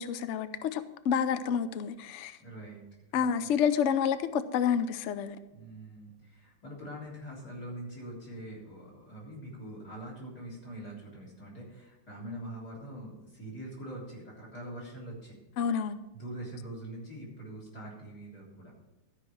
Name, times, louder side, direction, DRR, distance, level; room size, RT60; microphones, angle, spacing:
voice 1, 0.0-2.4 3.1-5.4 15.6-16.0, left 7 dB, 80° left, 12 dB, 0.6 m, -29 dB
voice 2, 2.4-3.5 5.5-15.4 16.1-18.7, right 1 dB, 55° left, -4 dB, 4.2 m, -44 dB
13.0 x 5.4 x 7.7 m, 1.0 s
omnidirectional pair, 2.1 m